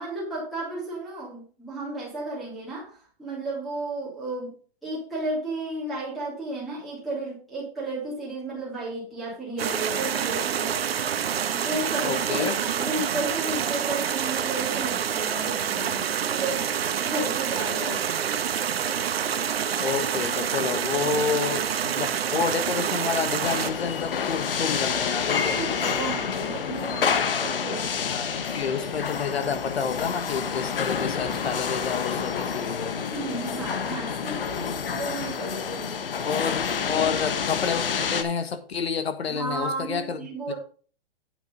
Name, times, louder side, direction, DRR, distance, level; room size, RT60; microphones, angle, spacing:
voice 1, 0.0-4.5 4.8-10.9 11.5-16.0 16.3-16.7 17.0-18.0 21.0-21.4 25.5-27.9 32.9-34.7 34.9-36.0 36.9-37.1 39.3-40.5, right 2 dB, ahead, 3.0 m, -33 dB
sound 1, 9.6-23.7, right 8 dB, 75° right, 1.0 m, -27 dB
voice 2, 12.0-12.6 19.8-25.6 27.7-33.0 36.2-40.2 40.5-40.6, left 6 dB, 85° left, 1.6 m, -29 dB
sound 2, 23.4-38.2, left 6 dB, 65° left, 1.3 m, -28 dB
9.0 x 8.2 x 3.7 m
hypercardioid pair, 180°, 31 cm